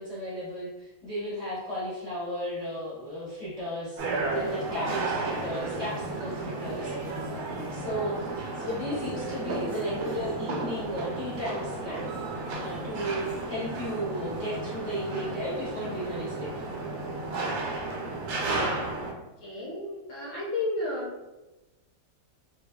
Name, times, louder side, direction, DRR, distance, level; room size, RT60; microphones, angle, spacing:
voice 1, 0.0-6.9 7.7-12.0 12.6-16.6, equal, 20° left, -11 dB, 1.0 m, -34 dB
sound 1, 4.0-19.1, right 2 dB, 85° right, 1.1 m, -33 dB
voice 2, 19.4-21.1, left 2 dB, 60° left, -6 dB, 0.9 m, -32 dB
2.6 x 2.4 x 2.2 m, 1.0 s
omnidirectional pair, 1.6 m